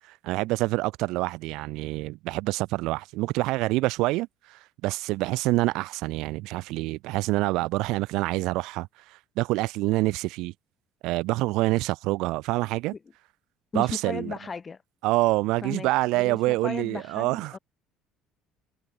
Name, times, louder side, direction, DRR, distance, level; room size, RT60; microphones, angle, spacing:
voice 1, 0.1-10.5 11.0-12.9 13.7-14.3 15.0-17.6, right 20 dB, 60° right, 1.4 m, -26 dB
voice 2, 13.7-14.8 15.6-17.6, left 5 dB, 30° left, 6.2 m, -36 dB
figure-of-eight pair, 55°, 0 cm